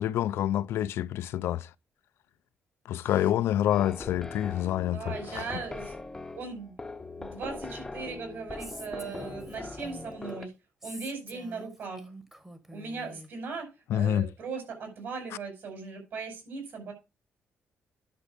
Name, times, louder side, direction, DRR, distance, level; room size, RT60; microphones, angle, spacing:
voice 1, 0.0-1.7 2.9-5.4 13.9-14.3, left 12 dB, 80° left, 0.5 m, -27 dB
sound 1, 3.7-10.5, left 3 dB, 15° left, 0.7 m, -41 dB
voice 2, 4.9-5.9 6.3-6.8 7.2-10.5 10.8-12.1 12.7-16.9, right 4 dB, 60° right, 5.6 m, -38 dB
Female speech woman speaking, 8.6-10.3 10.8-13.3, equal, 10° right, 1.1 m, -47 dB
10.5 x 6.1 x 5.2 m
cardioid pair, 165°, 4 cm